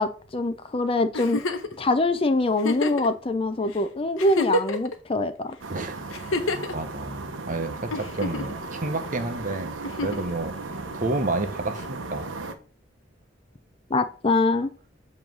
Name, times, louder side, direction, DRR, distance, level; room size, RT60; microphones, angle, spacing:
voice 1, 0.0-1.4 1.8-5.6 13.9-14.7, left 2 dB, 30° left, 10 dB, 0.5 m, -24 dB
Giggle, 1.1-1.7 2.6-3.1 3.7-3.8 4.2-4.9 6.1-6.7 7.9-8.6 9.8-10.3 11.8-11.9, left 2 dB, 85° left, 0.9 m, -28 dB
sound 1, 5.6-12.5, right 3 dB, 75° right, 0.9 m, -36 dB
voice 2, 5.7-6.1 6.3-10.5 10.9-12.3, right 2 dB, 40° right, 7 dB, 1.0 m, -30 dB
7.3 x 3.1 x 6.1 m, 0.39 s
head